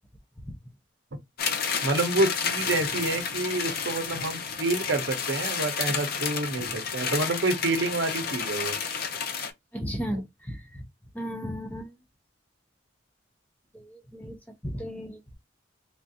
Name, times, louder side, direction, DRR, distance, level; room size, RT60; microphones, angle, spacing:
sound 1, 1.4-9.5, left 6 dB, 55° left, 0.6 m, -31 dB
voice 1, 1.8-8.8 10.1-10.2, right 2 dB, 65° right, 0.7 m, -28 dB
voice 2, 9.7-10.8 11.1-11.9 13.7-15.2, equal, 10° left, 0.6 m, -35 dB
3.4 x 2.4 x 2.7 m
head